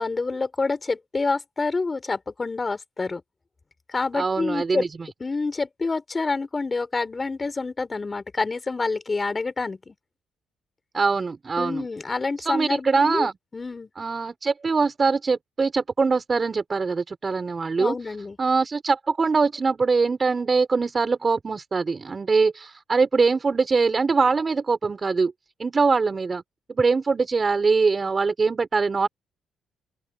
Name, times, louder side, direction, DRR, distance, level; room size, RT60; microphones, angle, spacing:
voice 1, 0.0-3.2 3.9-4.8 5.2-9.9 11.6-13.3 13.5-13.9 17.8-18.4, left 3 dB, 25° left, 4.2 m, -27 dB
voice 2, 4.1-5.1 10.9-11.9 12.4-13.3 14.0-17.9 18.4-25.3 25.6-26.4 26.7-29.1, right 4 dB, 35° right, 4.5 m, -23 dB
open air
cardioid pair, 90°, 0 cm